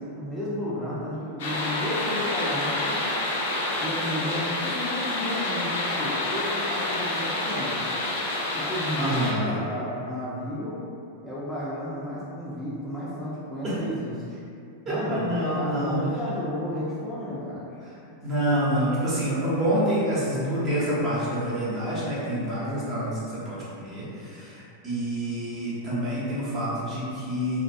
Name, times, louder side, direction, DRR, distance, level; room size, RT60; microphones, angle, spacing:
voice 1, 0.1-3.1 3.8-7.9 8.5-10.8 11.2-14.4 14.9-15.3 15.5-17.7, equal, 10° left, -10 dB, 0.5 m, -32 dB
sound 1, 1.4-9.3, left 2 dB, 70° left, 0.4 m, -28 dB
voice 2, 7.8-8.3 9.0-9.5 13.6-13.8 14.9-16.0 17.8-27.6, right 1 dB, 30° right, -9 dB, 1.0 m, -28 dB
2.3 x 2.2 x 2.6 m, 2.6 s
hypercardioid pair, 110°, 0 cm